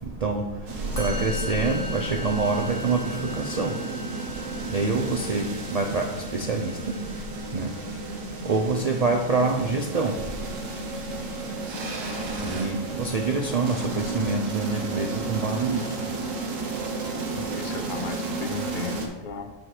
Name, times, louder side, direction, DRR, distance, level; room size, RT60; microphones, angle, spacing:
sound 1, 0.7-19.1, right 3 dB, 90° right, 1.4 m, -33 dB
Musical instrument, 0.9-8.2, equal, 15° left, 1.3 m, -40 dB
voice 1, 1.0-3.8 4.7-6.1 6.3-7.0 7.5-7.7 8.4-10.2 12.4-15.8, right 3 dB, 55° right, 3 dB, 0.4 m, -26 dB
voice 2, 17.1-19.5, left 6 dB, 60° left, 8 dB, 0.5 m, -36 dB
5.8 x 5.1 x 4.9 m, 1.1 s
omnidirectional pair, 1.3 m